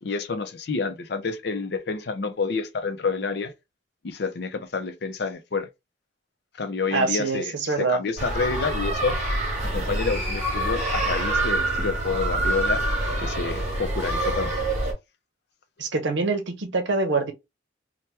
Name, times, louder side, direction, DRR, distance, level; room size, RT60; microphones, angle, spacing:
voice 1, 0.0-3.5 4.0-5.7 6.5-9.1 9.7-12.8 13.2-14.5, left 4 dB, 55° left, 0.5 m, -28 dB
voice 2, 6.9-8.0 15.8-17.3, right 3 dB, 70° right, 0.7 m, -25 dB
sound 1, 8.2-14.9, right 1 dB, 35° right, 1.2 m, -26 dB
2.9 x 2.2 x 3.2 m
head